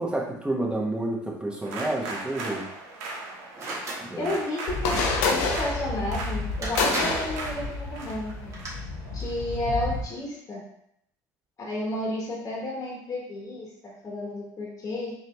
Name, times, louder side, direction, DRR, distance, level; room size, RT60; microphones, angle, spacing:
voice 1, 0.0-2.7 4.0-4.3, right 1 dB, 10° right, -1 dB, 1.1 m, -29 dB
sound 1, 1.6-10.0, right 2 dB, 85° right, 0.7 m, -38 dB
sound 2, 3.6-4.1 6.1-6.2 6.6-7.4 8.3-8.7, right 2 dB, 35° right, 1.4 m, -33 dB
voice 2, 4.2-8.5 9.1-10.6 11.6-15.1, left 1 dB, 40° left, -3 dB, 1.3 m, -32 dB
sound 3, 4.7-10.0, left 3 dB, 85° left, 0.7 m, -29 dB
4.1 x 2.8 x 3.2 m, 0.72 s
supercardioid pair, 80°, 9 cm